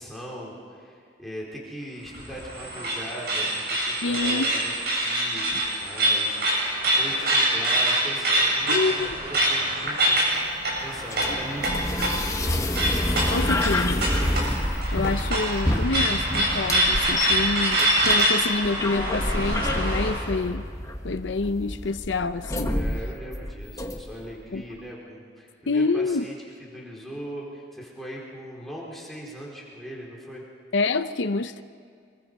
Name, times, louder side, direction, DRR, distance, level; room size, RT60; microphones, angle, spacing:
voice 1, 0.0-4.7 5.0-6.7 6.9-12.6 22.6-26.3 26.7-30.4, equal, ahead, -4 dB, 4.3 m, -39 dB
sound 1, 2.1-20.2, right 1 dB, 60° right, 7.4 m, -25 dB
voice 2, 4.0-4.5 8.7-9.2 13.3-14.1 14.3-14.4 14.9-20.7 21.0-22.7 24.5-24.6 25.7-26.2 30.7-31.6, left 3 dB, 85° left, 10 dB, 0.7 m, -27 dB
sound 2, 10.3-24.3, left 1 dB, 20° left, 1.2 m, -28 dB
25.5 x 22.5 x 5.5 m, 2.2 s
head